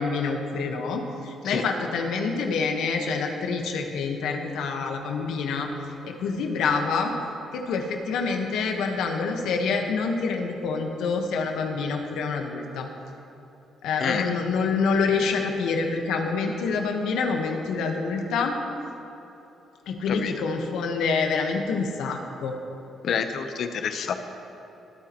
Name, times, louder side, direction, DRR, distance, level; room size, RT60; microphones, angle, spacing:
voice 1, 0.0-5.7 6.0-7.1 7.5-12.9 13.8-18.6 19.9-22.5, left 4 dB, 85° left, 3 dB, 1.3 m, -27 dB
voice 2, 14.0-14.3 20.1-20.3 23.0-24.1, left 7 dB, 65° left, 8 dB, 0.9 m, -28 dB
21.0 x 9.3 x 3.1 m, 3.0 s
cardioid pair, 90°, 0 cm